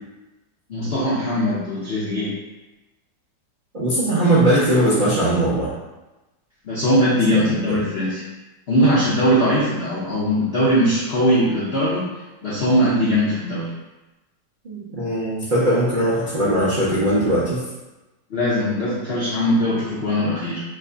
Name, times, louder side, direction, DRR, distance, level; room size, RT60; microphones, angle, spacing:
voice 1, 0.7-2.3 6.6-8.2 8.7-12.0 12.4-13.7 18.3-20.6, equal, 65° left, -9 dB, 0.6 m, -20 dB
voice 2, 3.7-5.7 7.5-7.8 14.6-17.6, right 1 dB, 65° right, -9 dB, 0.5 m, -20 dB
3.1 x 2.2 x 3.7 m, 1.1 s
omnidirectional pair, 1.9 m